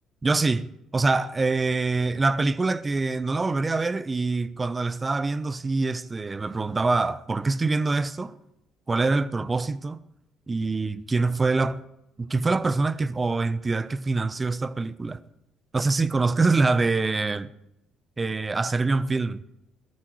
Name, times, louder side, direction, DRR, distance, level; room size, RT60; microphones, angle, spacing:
voice 1, 0.2-8.3 8.9-10.0 10.5-11.8 12.2-15.2 15.7-17.5 18.2-19.4, right 3 dB, 25° right, 0.9 m, -25 dB
18.0 x 13.5 x 4.8 m
hypercardioid pair, 50°, 0 cm